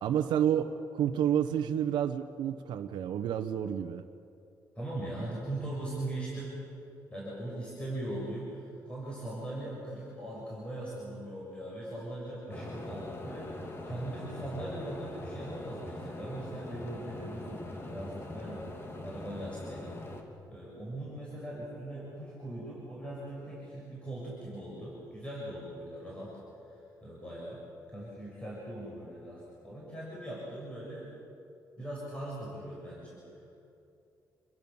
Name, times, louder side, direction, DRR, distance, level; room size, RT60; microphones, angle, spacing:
voice 1, 0.0-4.0, right 9 dB, 80° right, 6 dB, 1.0 m, -29 dB
voice 2, 4.8-6.6 7.1-18.7 19.0-19.9 20.5-26.4 27.0-27.6 27.9-31.1 31.8-33.6, right 1 dB, 15° left, -5 dB, 7.0 m, -40 dB
sound 1, 12.5-20.2, left 1 dB, 35° left, 3.0 m, -42 dB
28.0 x 22.0 x 7.2 m, 2.7 s
cardioid pair, 120°, 8 cm